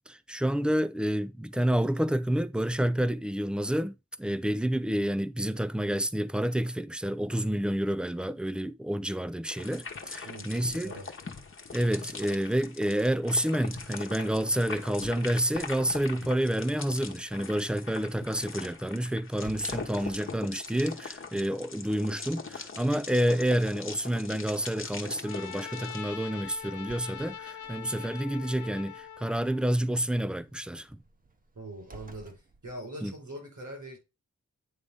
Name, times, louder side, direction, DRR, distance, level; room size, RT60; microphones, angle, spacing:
voice 1, 0.0-10.9 11.7-31.0 33.0-33.1, right 1 dB, 5° right, 0.4 m, -29 dB
sound 1, 9.5-26.0, left 4 dB, 45° left, 1.1 m, -42 dB
voice 2, 10.2-11.1 31.5-34.0, right 1 dB, 80° right, 4.6 m, -42 dB
Int- Mom&Dadcondooropenandclose, 14.3-32.8, right 3 dB, 30° right, 0.9 m, -57 dB
Trumpet, 25.2-29.7, left 8 dB, 80° left, 0.7 m, -42 dB
9.5 x 3.8 x 3.5 m
wide cardioid pair, 120°, 29 cm